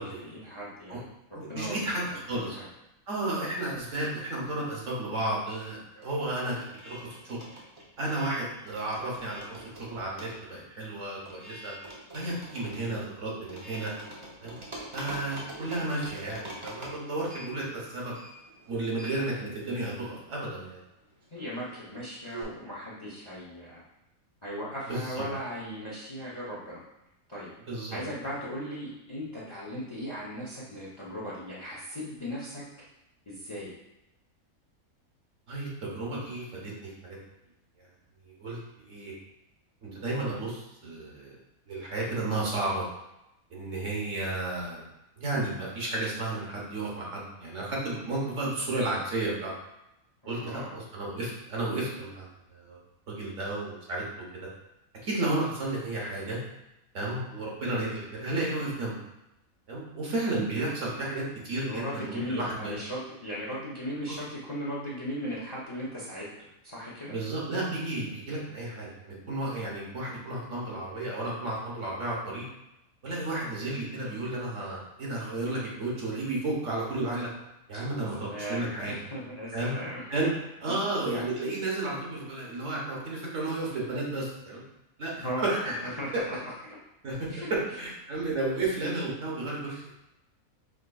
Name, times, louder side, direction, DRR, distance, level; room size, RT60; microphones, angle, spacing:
voice 1, 0.0-1.9 2.3-2.7 17.5-17.7 21.3-23.8 24.4-26.8 27.3-27.5 27.9-32.6 33.3-33.7 50.2-50.8 61.6-67.2 77.7-77.8 78.2-80.3 80.7-80.8 81.1-81.3 85.2-85.4 85.8-86.1 86.7-86.8 87.3-87.5, equal, 25° left, -6 dB, 0.8 m, -38 dB
voice 2, 1.3-2.6 3.1-7.4 8.0-11.7 12.1-13.9 14.4-14.6 14.9-18.1 18.7-20.8 24.9-25.2 27.7-28.0 35.5-37.2 38.2-38.6 38.8-39.1 39.8-41.4 41.7-42.8 43.5-44.8 45.2-49.5 50.2-52.8 53.1-54.0 55.0-56.4 56.9-59.0 59.7-62.7 67.1-72.4 73.0-77.3 77.7-79.0 79.5-79.7 80.1-80.3 80.6-84.6 85.0-85.8 87.0-87.3 87.8-89.9, right 2 dB, 60° right, -4 dB, 1.4 m, -32 dB
sound 1, 3.7-4.9 5.1-22.4, right 1 dB, 25° right, 0.7 m, -46 dB
5.0 x 3.9 x 2.3 m, 0.90 s
omnidirectional pair, 1.5 m